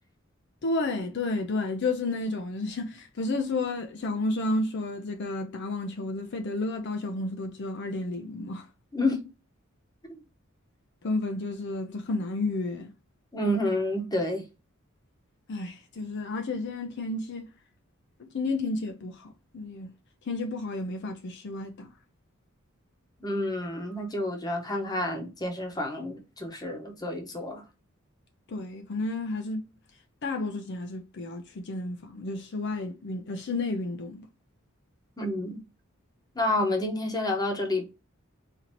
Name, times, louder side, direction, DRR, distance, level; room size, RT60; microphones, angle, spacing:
voice 1, 0.6-8.7 11.0-12.9 15.5-17.5 18.2-19.9 20.2-21.9 28.5-29.7 30.2-34.3, left 2 dB, 55° left, 0.5 m, -31 dB
voice 2, 8.9-9.3 10.0-10.2 13.3-14.4 23.2-27.6 35.2-35.6 36.3-37.9, left 1 dB, 20° left, 0.9 m, -29 dB
4.1 x 2.7 x 2.9 m
head